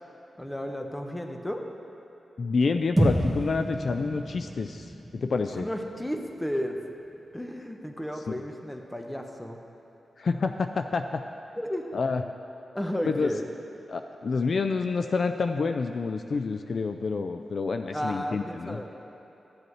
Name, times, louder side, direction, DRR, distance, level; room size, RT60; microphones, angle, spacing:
voice 1, 0.4-1.7 5.6-6.8 7.3-9.6 11.6-12.0 12.7-13.4 17.9-18.8, equal, 10° left, 3 dB, 1.0 m, -33 dB
voice 2, 2.4-5.7 8.3-8.4 10.2-11.2 11.9-12.2 13.0-13.3 13.9-18.8, left 4 dB, 65° left, 7 dB, 0.3 m, -28 dB
sound 1, 3.0-7.3, right 1 dB, 10° right, 1.4 m, -30 dB
13.5 x 7.7 x 3.2 m, 2.9 s
cardioid pair, 50°, 0 cm